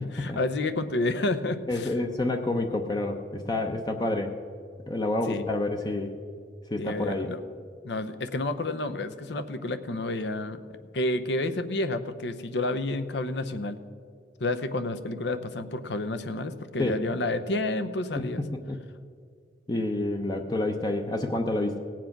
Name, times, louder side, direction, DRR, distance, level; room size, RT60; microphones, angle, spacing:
voice 1, 0.0-1.9 5.3-5.5 6.8-7.4 7.8-10.6 10.9-13.8 14.4-18.4, left 2 dB, 70° left, 10 dB, 0.7 m, -30 dB
voice 2, 1.7-4.3 4.9-6.1 6.7-7.3 16.8-17.0 18.1-18.2 18.7-18.8 19.7-21.8, left 2 dB, 25° left, 5 dB, 0.6 m, -28 dB
17.5 x 7.6 x 5.9 m, 2.2 s
head